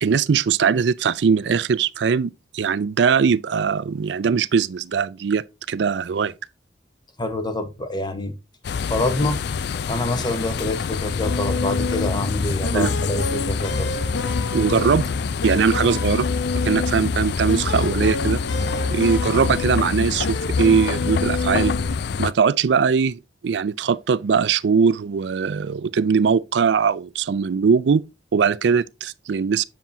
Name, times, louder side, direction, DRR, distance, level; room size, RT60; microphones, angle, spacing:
voice 1, 0.0-6.3 12.7-12.9 14.5-15.1 15.4-16.3 16.6-18.4 18.9-21.7 22.2-28.0 28.3-29.6, right 6 dB, 70° right, 0.4 m, -20 dB
voice 2, 7.2-8.3 8.9-9.4 9.9-13.9, left 2 dB, 25° left, 1.0 m, -26 dB
sound 1, 8.6-22.3, left 6 dB, 65° left, 0.4 m, -27 dB
sound 2, 11.2-22.0, left 3 dB, 85° left, 0.9 m, -27 dB
7.4 x 7.2 x 2.7 m
head